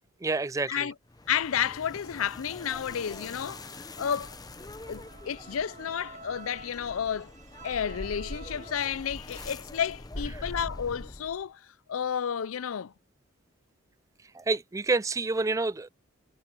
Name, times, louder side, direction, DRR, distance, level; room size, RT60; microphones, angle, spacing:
voice 1, 0.2-0.9 10.3-10.5 14.2-15.9, right 3 dB, 15° right, 0.3 m, -29 dB
sound 1, 1.1-11.5, left 2 dB, 20° left, 0.8 m, -43 dB
voice 2, 1.3-4.3 4.9-7.3 7.6-11.6 11.9-12.9, left 8 dB, 85° left, 0.5 m, -31 dB
sound 2, 3.9-9.5, equal, 40° left, 6.5 m, -56 dB
Bowed string instrument, 4.5-9.2, right 5 dB, 35° right, 7.8 m, -50 dB
head